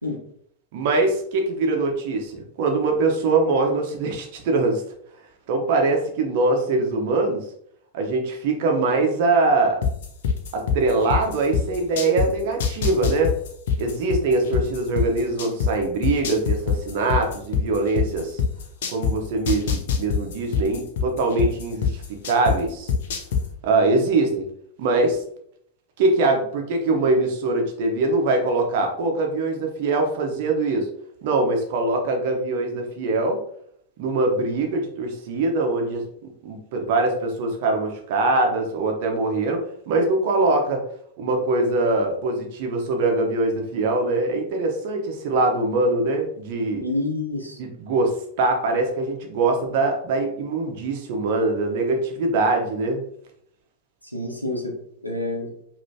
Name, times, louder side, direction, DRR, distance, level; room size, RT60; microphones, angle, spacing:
voice 1, 0.7-4.8 5.5-7.5 7.9-9.8 10.5-13.3 13.8-18.4 18.9-22.9 23.6-24.5 24.8-25.2 26.0-30.9 31.2-33.4 34.0-36.0 36.4-40.8 41.2-46.8 47.6-53.0, right 3 dB, 50° right, 2 dB, 1.0 m, -23 dB
sound 1, 9.8-12.3 12.6-15.7 16.0-19.1 19.5-22.6 22.9-23.4, left 6 dB, 55° left, 0.7 m, -22 dB
voice 2, 46.8-47.6 54.1-54.7 55.0-55.5, left 2 dB, 90° left, 1 dB, 0.9 m, -28 dB
5.2 x 3.0 x 2.8 m, 0.67 s
figure-of-eight pair, 90°, 0 cm